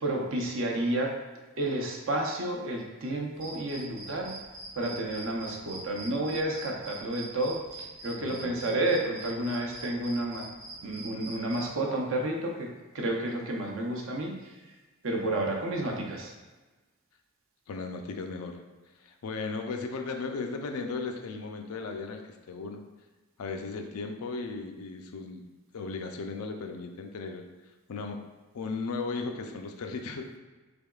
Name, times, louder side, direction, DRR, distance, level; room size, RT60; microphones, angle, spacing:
voice 1, 0.0-1.1 1.6-4.3 4.8-10.4 10.8-12.7 12.9-14.3 15.0-16.3, right 1 dB, 60° right, 0 dB, 0.6 m, -31 dB
sound 1, 3.4-11.7, right 2 dB, 20° right, 0.5 m, -44 dB
voice 2, 8.2-8.7 17.7-18.6 19.0-22.2 22.5-22.8 23.4-25.4 25.7-27.5 27.9-28.2 28.5-30.4, left 4 dB, 90° left, 4 dB, 0.4 m, -36 dB
3.6 x 3.4 x 2.3 m, 1.2 s
head